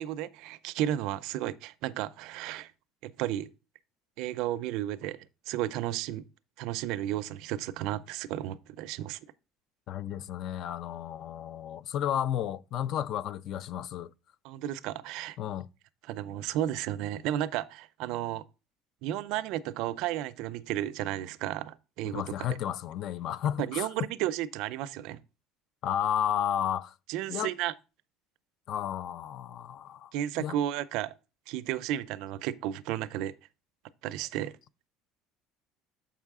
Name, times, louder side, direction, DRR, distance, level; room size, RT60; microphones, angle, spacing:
voice 1, 0.0-2.7 3.0-3.5 4.2-6.2 6.6-9.2 14.4-15.4 16.1-18.4 19.0-22.2 23.6-25.2 27.1-27.7 30.1-31.1 31.5-33.3 34.0-34.5, right 13 dB, 65° right, 0.4 m, -33 dB
voice 2, 9.9-14.1 15.4-15.7 22.0-23.9 25.8-26.9 27.3-27.5 28.7-30.6, left 10 dB, 50° left, 0.3 m, -32 dB
7.1 x 5.6 x 3.5 m
cardioid pair, 150°, 0 cm